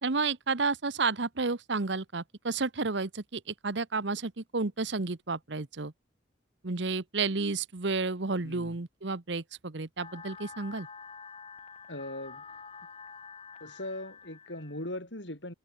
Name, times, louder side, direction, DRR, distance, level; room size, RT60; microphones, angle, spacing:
voice 1, 0.0-5.9 6.6-10.9, right 4 dB, 65° right, 1.1 m, -31 dB
voice 2, 8.4-8.8 11.9-12.4 13.6-15.5, left 1 dB, 65° left, 7.3 m, -39 dB
sound 1, 10.0-15.0, left 5 dB, 30° left, 3.3 m, -48 dB
head